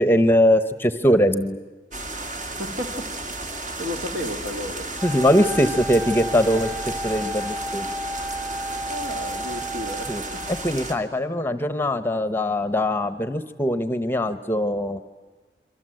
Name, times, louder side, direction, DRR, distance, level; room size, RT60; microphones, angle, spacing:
voice 1, 0.0-1.6 5.0-7.9 10.1-10.2 10.6-15.0, equal, 10° left, 11 dB, 0.9 m, -21 dB
sound 1, 1.9-11.0, right 2 dB, 45° right, 2.6 m, -33 dB
voice 2, 2.6-3.1 3.8-4.9 8.9-10.4, left 1 dB, 60° right, 5 dB, 2.7 m, -32 dB
Wind instrument woodwind instrument, 5.0-10.9, equal, 25° right, 3.7 m, -33 dB
28.0 x 23.5 x 7.8 m, 1.3 s
head